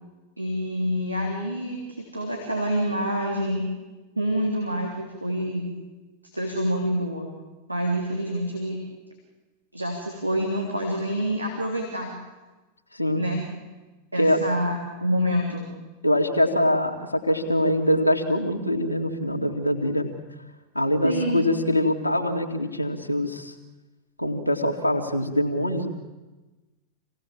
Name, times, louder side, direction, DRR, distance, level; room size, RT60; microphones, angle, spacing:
voice 1, 0.4-3.7 4.1-5.7 6.3-7.3 7.7-8.8 9.7-12.1 13.2-13.4 14.1-15.7 21.0-21.4, equal, 85° right, 0 dB, 3.4 m, -27 dB
voice 2, 14.2-14.5 16.0-20.1 20.7-23.5 24.2-25.9, left 1 dB, 85° left, 2 dB, 2.2 m, -23 dB
27.0 x 18.0 x 7.5 m, 1.2 s
figure-of-eight pair, 90°, 0 cm